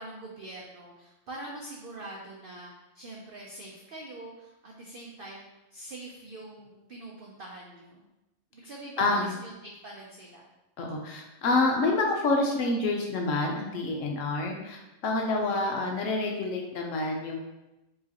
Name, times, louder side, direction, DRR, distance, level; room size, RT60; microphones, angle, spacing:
voice 1, 0.0-5.4 5.7-8.1 8.5-10.4 15.2-15.5, right 2 dB, 70° right, -2 dB, 0.5 m, -44 dB
voice 2, 10.8-17.4, left 2 dB, 65° left, 1 dB, 0.9 m, -27 dB
4.8 x 3.0 x 2.8 m, 0.98 s
omnidirectional pair, 1.6 m